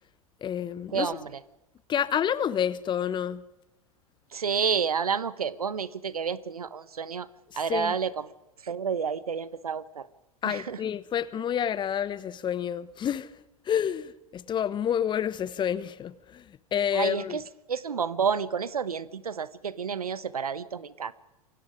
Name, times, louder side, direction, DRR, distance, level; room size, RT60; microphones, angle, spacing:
voice 1, 0.4-1.2 1.9-3.4 7.7-7.9 10.4-13.3 13.7-16.4 16.7-17.4, left 9 dB, 25° left, 18 dB, 1.1 m, -29 dB
voice 2, 0.9-1.4 4.3-7.3 7.6-8.2 8.6-10.1 10.4-10.8 16.9-17.4 17.7-21.1, right 6 dB, 75° right, 17 dB, 1.3 m, -30 dB
28.0 x 24.0 x 5.1 m, 0.98 s
figure-of-eight pair, 90°, 19 cm